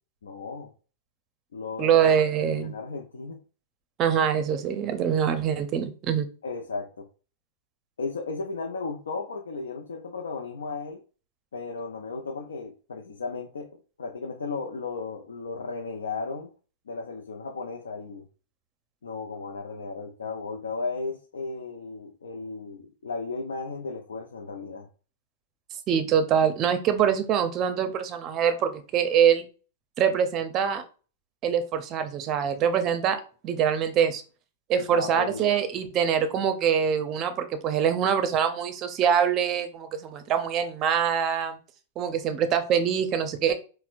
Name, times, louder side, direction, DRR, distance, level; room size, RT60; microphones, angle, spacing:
voice 1, 0.2-0.7 1.5-2.0 2.4-3.4 6.4-7.1 8.0-11.0 11.5-13.7 14.0-16.5 16.9-18.3 19.0-24.9 34.7-35.5, left 4 dB, 90° left, 2 dB, 0.5 m, -35 dB
voice 2, 1.8-2.7 4.0-6.3 25.9-29.4 30.0-30.8 31.4-33.2 33.4-34.2 34.7-41.6 42.0-43.5, right 8 dB, 35° right, 9 dB, 0.6 m, -24 dB
4.2 x 2.1 x 2.5 m, 0.38 s
hypercardioid pair, 120°, 0 cm